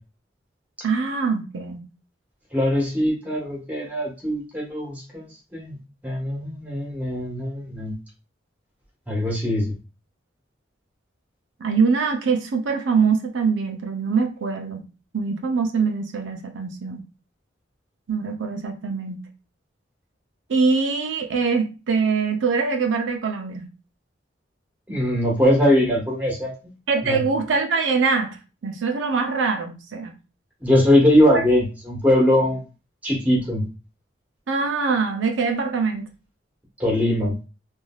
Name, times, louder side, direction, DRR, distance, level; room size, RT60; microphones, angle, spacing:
voice 1, 0.8-1.8 11.6-14.8 15.1-17.0 18.1-19.2 20.5-23.7 26.9-28.4 28.6-30.1 34.5-36.1, right 5 dB, 80° right, 4 dB, 0.5 m, -23 dB
voice 2, 2.5-5.7 6.0-7.9 9.1-9.7 24.9-26.5 27.0-27.2 30.6-32.6 33.0-33.6 36.8-37.3, left 1 dB, 10° right, -3 dB, 1.2 m, -21 dB
3.2 x 2.6 x 2.2 m, 0.31 s
head